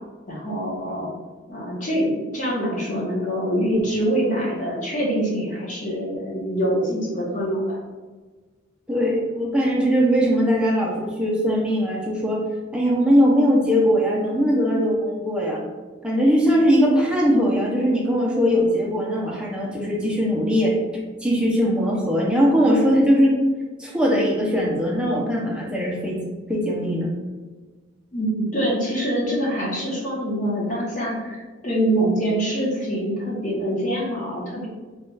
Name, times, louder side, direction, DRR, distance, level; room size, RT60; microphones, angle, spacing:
voice 1, 0.3-1.1 1.5-7.8 28.1-34.7, right 1 dB, 40° left, -4 dB, 0.8 m, -25 dB
voice 2, 8.9-12.4 12.7-15.6 16.0-20.8 21.2-23.4 23.8-26.2 26.5-27.1, equal, 5° right, -3 dB, 0.5 m, -20 dB
3.1 x 2.3 x 3.2 m, 1.3 s
head